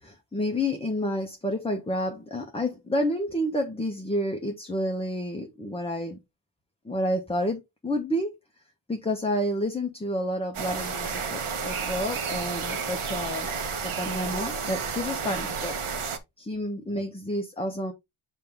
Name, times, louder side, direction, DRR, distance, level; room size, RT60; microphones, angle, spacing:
voice 1, 0.0-6.2 6.8-8.4 8.9-15.8 16.4-17.9, left 1 dB, 10° left, 1.1 m, -30 dB
sound 1, 10.5-16.2, right 5 dB, 80° right, 1.5 m, -31 dB
7.6 x 3.6 x 3.4 m
wide cardioid pair, 130°, 50 cm